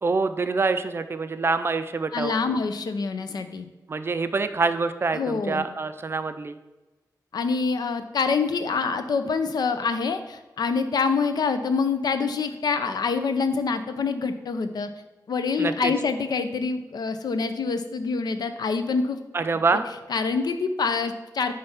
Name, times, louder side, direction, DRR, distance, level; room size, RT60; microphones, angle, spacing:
voice 1, 0.0-2.4 3.9-6.6 15.6-15.9 19.3-19.8, right 4 dB, 35° right, 10 dB, 0.4 m, -25 dB
voice 2, 2.1-3.7 5.1-5.7 7.3-14.9 15.3-19.2 20.1-21.5, left 4 dB, 75° left, 9 dB, 0.6 m, -26 dB
8.9 x 3.4 x 5.6 m, 1.1 s
wide cardioid pair, 160°, 7 cm